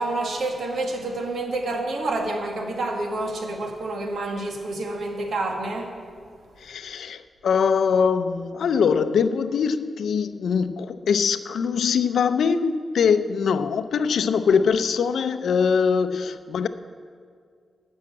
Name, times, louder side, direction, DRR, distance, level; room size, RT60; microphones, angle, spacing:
voice 1, 0.0-5.9, right 2 dB, 70° right, 3 dB, 1.6 m, -28 dB
voice 2, 6.6-16.7, left 6 dB, 85° left, 12 dB, 0.5 m, -22 dB
12.0 x 6.3 x 8.6 m, 2.1 s
wide cardioid pair, 130°, 0 cm